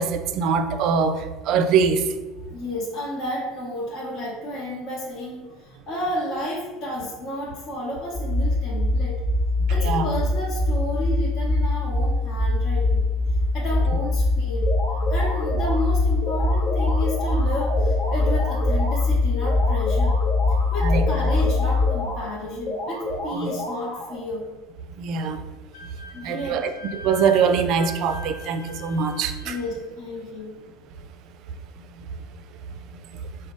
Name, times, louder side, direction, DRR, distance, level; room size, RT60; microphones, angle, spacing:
voice 1, 0.0-2.1 9.8-10.1 20.8-21.0 23.3-23.5 25.0-25.4 26.2-26.7 27.0-29.6, right 5 dB, 55° right, 8 dB, 0.3 m, -23 dB
voice 2, 2.5-9.2 9.7-13.0 13.5-14.7 15.1-20.2 20.7-24.4 26.1-26.6 29.4-30.5, left 1 dB, 45° left, -5 dB, 0.9 m, -31 dB
sound 1, 8.1-21.9, left 2 dB, 20° left, 0.4 m, -22 dB
sound 2, 14.6-15.8 16.2-19.0 19.4-22.2 22.6-24.2, left 1 dB, 60° left, 1.4 m, -31 dB
Wind instrument woodwind instrument, 25.7-29.7, left 2 dB, 85° left, 1.2 m, -41 dB
4.9 x 2.2 x 3.7 m, 1.2 s
supercardioid pair, 130°, 0 cm